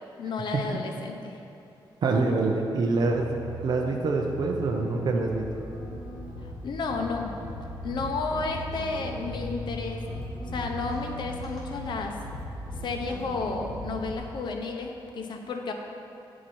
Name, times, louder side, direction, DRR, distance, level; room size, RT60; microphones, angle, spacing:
voice 1, 0.2-1.4 6.4-7.3 7.8-10.0 10.5-12.2 12.8-15.7, left 3 dB, 65° left, 3 dB, 0.8 m, -32 dB
voice 2, 2.0-5.5, right 3 dB, 55° right, 1 dB, 0.6 m, -26 dB
sound 1, 3.0-14.2, left 1 dB, ahead, 1.8 m, -38 dB
10.0 x 4.7 x 4.2 m, 2.6 s
wide cardioid pair, 155°, 8 cm